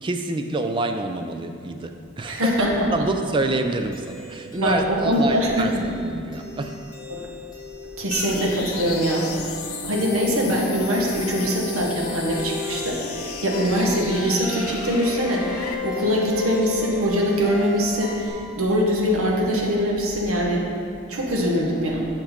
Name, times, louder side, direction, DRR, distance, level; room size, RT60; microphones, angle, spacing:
voice 1, 0.0-2.5 2.9-6.8, right 2 dB, 25° right, 6 dB, 0.3 m, -27 dB
voice 2, 2.3-2.7 4.6-5.8 7.1-7.3 8.0-9.4 9.8-20.6 21.1-22.1, equal, 75° right, -2 dB, 1.2 m, -23 dB
sound 1, 3.9-18.3, left 2 dB, 20° left, 1.2 m, -35 dB
sound 2, 8.1-15.7, left 7 dB, 85° left, 0.7 m, -36 dB
8.1 x 6.0 x 4.4 m, 2.6 s
head